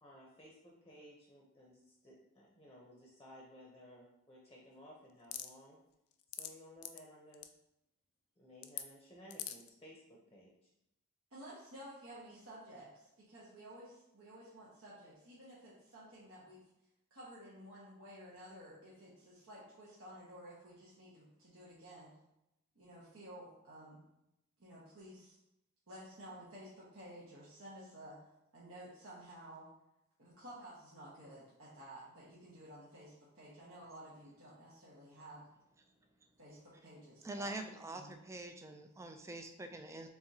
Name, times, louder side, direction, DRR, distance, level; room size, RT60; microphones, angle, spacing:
voice 1, 0.0-5.8 6.3-7.4 8.4-10.5, equal, 15° left, -3 dB, 0.7 m, -57 dB
sound 1, 5.3-5.5 6.1-6.5 6.8-7.0 7.3-7.5 8.6-8.8 9.3-9.7, left 11 dB, 85° left, 0.4 m, -42 dB
voice 2, 11.3-16.6 17.1-22.1 22.7-24.0 24.6-25.4 25.9-28.2 28.5-29.7 30.2-35.4 36.4-37.5 37.9-38.2, right 1 dB, 70° right, -9 dB, 1.2 m, -53 dB
voice 3, 37.2-40.1, right 2 dB, 15° right, 6 dB, 0.3 m, -45 dB
4.7 x 3.6 x 2.7 m, 0.86 s
head